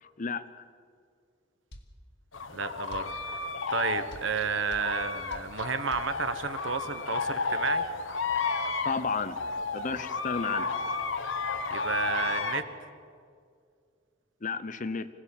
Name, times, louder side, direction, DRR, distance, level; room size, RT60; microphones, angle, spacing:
voice 1, 0.0-0.5 8.8-9.4 9.7-10.8 14.4-15.1, left 4 dB, 40° left, 13 dB, 0.8 m, -32 dB
sound 1, 1.7-1.9 2.9-3.1 4.1-4.3 4.7-4.9 5.3-5.5 5.9-6.1, equal, 60° left, 1.8 m, -46 dB
sound 2, 2.3-12.6, left 4 dB, 75° left, 1.3 m, -32 dB
voice 2, 2.5-3.4 3.7-7.9 11.7-12.6, right 5 dB, 70° right, 11 dB, 1.2 m, -31 dB
26.0 x 17.5 x 7.4 m, 2.3 s
head